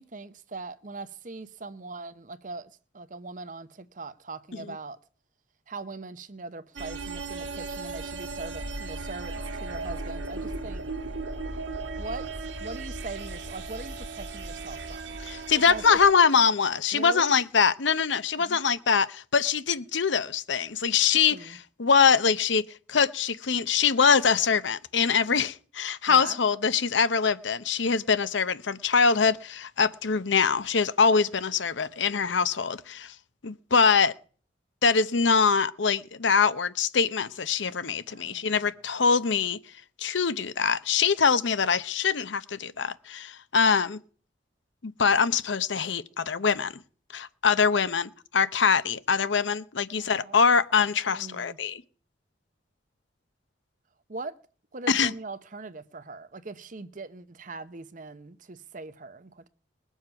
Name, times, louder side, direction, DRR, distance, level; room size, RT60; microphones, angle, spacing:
voice 1, 0.0-5.0 5.7-10.8 12.0-15.2 15.7-16.0 16.9-17.4 18.4-18.6 21.3-21.6 26.1-26.4 38.1-38.7 49.9-50.4 51.1-51.6 54.1-54.4 54.7-59.5, right 3 dB, 40° right, 0.8 m, -41 dB
sound 1, 6.7-16.1, right 3 dB, 75° right, 1.7 m, -36 dB
voice 2, 15.3-33.1 33.4-34.1 34.8-39.6 40.0-44.0 44.8-46.7 47.1-51.8 54.9-55.1, left 6 dB, 75° left, 0.8 m, -23 dB
21.0 x 7.3 x 5.8 m
head